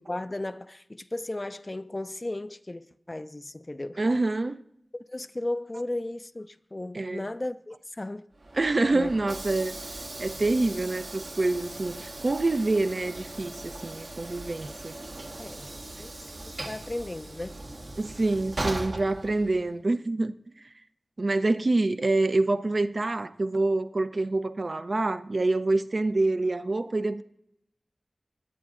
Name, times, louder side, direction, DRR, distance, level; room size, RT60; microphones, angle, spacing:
voice 1, 0.0-4.0 4.9-8.3 8.9-9.1 15.4-15.6 16.0-17.6, left 2 dB, 35° left, 0.4 m, -35 dB
voice 2, 4.0-4.6 6.9-7.2 8.5-9.7 10.2-15.0 18.0-20.3 21.2-27.2, right 2 dB, 55° right, 0.5 m, -26 dB
Train / Sliding door, 8.3-19.8, right 2 dB, 75° right, 1.4 m, -39 dB
21.0 x 8.2 x 2.5 m
wide cardioid pair, 60°, 0 cm